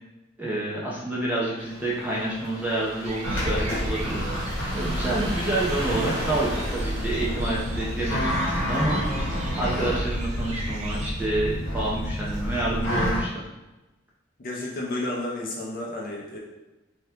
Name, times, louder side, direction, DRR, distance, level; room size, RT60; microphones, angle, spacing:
voice 1, 0.4-4.5 4.7-9.0 9.6-13.3, right 1 dB, 10° right, -6 dB, 0.6 m, -28 dB
sound 1, 1.6-9.7, equal, 70° right, 1.2 m, -37 dB
sound 2, 3.0-11.1, right 2 dB, 35° right, 0.3 m, -39 dB
sound 3, 3.2-13.2, equal, 70° left, 1.0 m, -29 dB
voice 2, 14.4-16.4, left 2 dB, 50° left, -3 dB, 0.6 m, -31 dB
2.8 x 2.3 x 3.5 m, 1.0 s
head